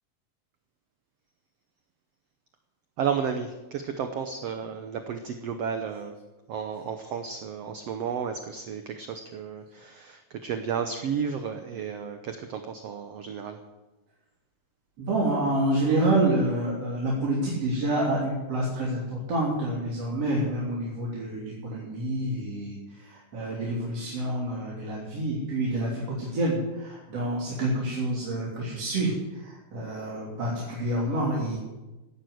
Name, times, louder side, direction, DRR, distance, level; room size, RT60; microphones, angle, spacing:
voice 1, 3.0-6.2 6.5-13.6, right 7 dB, 65° right, 7 dB, 1.7 m, -32 dB
voice 2, 15.0-31.6, right 1 dB, 50° right, -4 dB, 4.0 m, -28 dB
15.5 x 11.0 x 8.0 m, 1.1 s
omnidirectional pair, 3.8 m